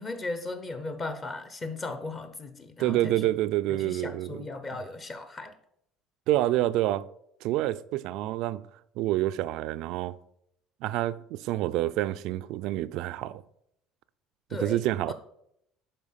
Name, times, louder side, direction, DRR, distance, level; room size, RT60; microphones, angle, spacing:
voice 1, 0.0-3.2 3.7-5.5 14.5-15.1, left 2 dB, 25° left, 0.8 m, -37 dB
voice 2, 2.8-4.5 6.3-7.1 7.4-8.7 9.0-10.2 10.8-13.4 14.5-15.1, right 15 dB, 65° right, 0.4 m, -28 dB
11.0 x 4.4 x 5.6 m
cardioid pair, 145°, 0 cm